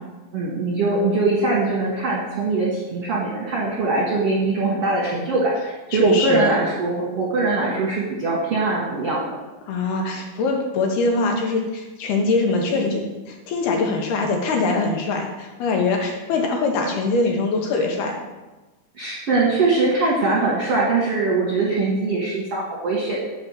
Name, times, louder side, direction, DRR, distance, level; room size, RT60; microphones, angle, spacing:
voice 1, 0.3-9.3 18.9-23.3, right 3 dB, 70° right, -5 dB, 1.4 m, -22 dB
voice 2, 5.9-6.5 9.7-18.2, left 3 dB, 70° left, 2 dB, 2.7 m, -23 dB
8.2 x 5.3 x 7.2 m, 1.1 s
omnidirectional pair, 5.1 m